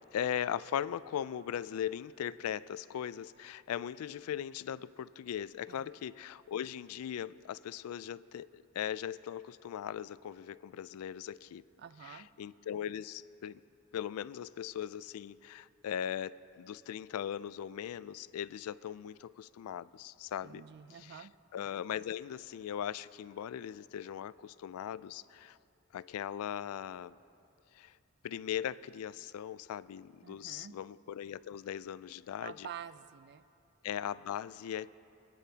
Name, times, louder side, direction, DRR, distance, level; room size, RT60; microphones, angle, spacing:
voice 1, 0.1-11.6 12.0-13.6 13.9-20.6 21.0-21.3 21.5-25.6 25.9-27.2 27.7-27.9 28.2-32.7 33.8-34.9, left 9 dB, 85° left, 17 dB, 0.3 m, -39 dB
voice 2, 11.8-12.3 20.4-21.3 30.2-30.8 32.4-33.5, right 8 dB, 50° right, 14 dB, 0.4 m, -48 dB
24.5 x 9.9 x 2.8 m, 2.6 s
head